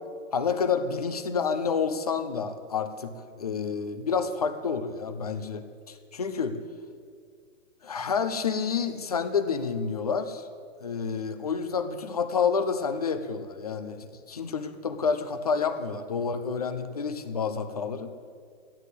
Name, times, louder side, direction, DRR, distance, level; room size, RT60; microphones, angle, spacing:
voice 1, 0.3-6.6 7.8-10.5 10.8-18.1, left 5 dB, 30° left, 9 dB, 0.7 m, -29 dB
14.5 x 10.5 x 8.2 m, 2.1 s
hypercardioid pair, 175°, 40 cm